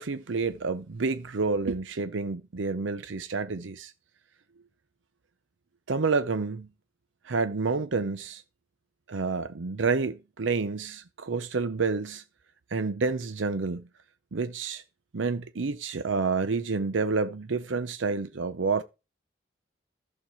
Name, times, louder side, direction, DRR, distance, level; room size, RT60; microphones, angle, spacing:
voice 1, 0.0-3.9 5.9-6.7 7.2-8.4 9.1-12.2 12.7-13.9 14.3-14.8 15.1-18.8, right 4 dB, 80° right, 0.7 m, -29 dB
13.0 x 6.5 x 4.4 m
head